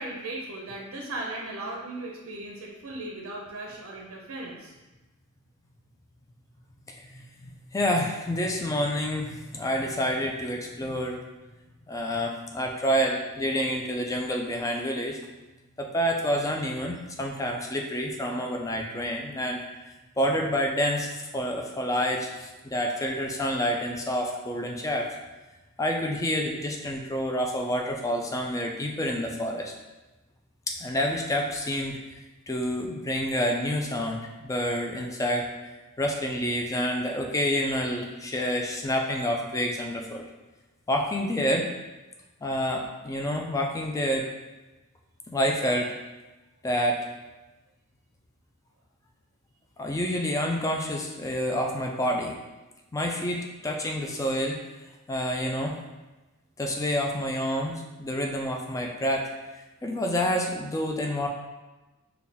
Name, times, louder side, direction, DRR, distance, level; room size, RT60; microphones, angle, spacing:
voice 1, 0.0-4.7, right 2 dB, 65° right, -1 dB, 0.5 m, -37 dB
voice 2, 7.1-11.2 11.9-15.2 15.8-19.6 20.2-25.1 25.8-29.7 30.7-32.0 32.5-35.5 36.0-40.2 40.9-41.7 42.4-44.3 45.3-45.9 46.6-47.1 49.8-52.4 52.9-54.6 55.1-55.7 56.6-59.3 59.8-61.3, equal, 15° left, 1 dB, 0.3 m, -28 dB
3.9 x 2.3 x 3.4 m, 1.1 s
head